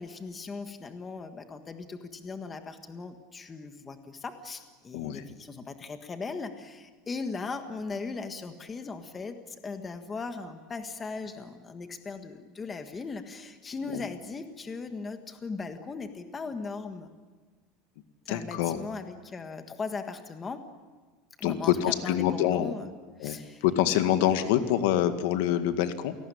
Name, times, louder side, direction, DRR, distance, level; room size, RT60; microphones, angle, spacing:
voice 1, 0.0-17.1 18.2-20.6 21.4-22.9 23.2-23.6, left 4 dB, 15° left, 7 dB, 1.6 m, -38 dB
voice 2, 4.9-5.3 13.9-14.0 18.3-18.8 21.4-22.8 23.2-26.1, left 11 dB, 70° left, 9 dB, 1.9 m, -26 dB
28.5 x 18.5 x 9.9 m, 1.3 s
cardioid pair, 165°, 0 cm